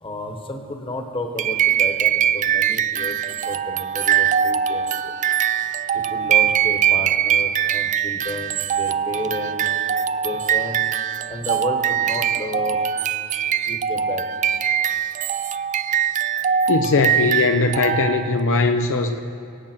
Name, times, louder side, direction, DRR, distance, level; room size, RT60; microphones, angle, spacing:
voice 1, 0.0-3.2 3.5-5.1 5.9-9.7 10.2-10.8 11.3-12.8 13.7-14.2, left 1 dB, 25° left, 4 dB, 1.3 m, -32 dB
sound 1, 1.4-18.4, right 9 dB, 35° right, 0.3 m, -22 dB
voice 2, 16.7-19.2, left 3 dB, 60° left, 5 dB, 0.6 m, -20 dB
23.0 x 8.9 x 4.5 m, 2.8 s
head